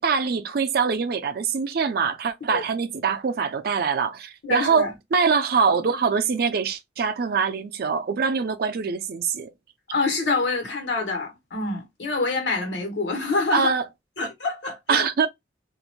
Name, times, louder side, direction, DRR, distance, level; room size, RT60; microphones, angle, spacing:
voice 1, 0.0-9.5 13.5-13.8 14.9-15.3, right 5 dB, 60° right, 0.4 m, -24 dB
voice 2, 4.4-4.9 9.9-13.7 14.2-15.1, left 3 dB, 85° left, 1.2 m, -26 dB
2.5 x 2.1 x 2.9 m
head